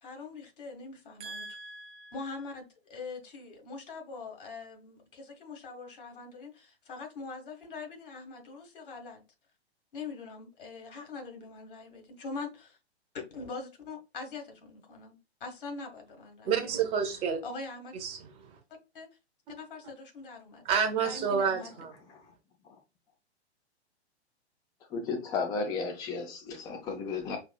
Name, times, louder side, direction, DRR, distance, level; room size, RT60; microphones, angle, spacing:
voice 1, 0.0-1.5 2.1-9.2 9.9-12.8 13.1-16.9 17.4-17.9 18.9-19.1 19.5-20.6 21.0-21.7, left 4 dB, 50° left, 1.6 m, -43 dB
voice 2, 1.2-2.1 16.4-17.4 18.0-18.2 20.6-21.9, right 6 dB, 15° right, 0.8 m, -30 dB
voice 3, 24.9-27.4, left 4 dB, 10° left, 0.5 m, -33 dB
5.8 x 2.7 x 2.3 m
figure-of-eight pair, 115°, 33 cm